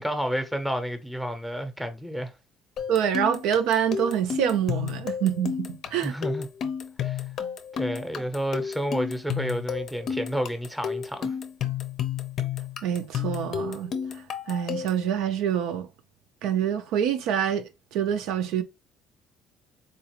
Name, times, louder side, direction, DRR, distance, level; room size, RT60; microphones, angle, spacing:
voice 1, 0.0-2.3 6.0-6.5 7.0-7.2 7.8-11.3, equal, 5° right, 0.7 m, -30 dB
sound 1, 2.8-15.1, left 8 dB, 50° left, 0.5 m, -32 dB
voice 2, 2.9-6.1 12.8-13.9 14.5-15.9 16.4-18.6, right 9 dB, 80° right, 0.5 m, -26 dB
3.9 x 2.4 x 2.9 m
cardioid pair, 130°, 0 cm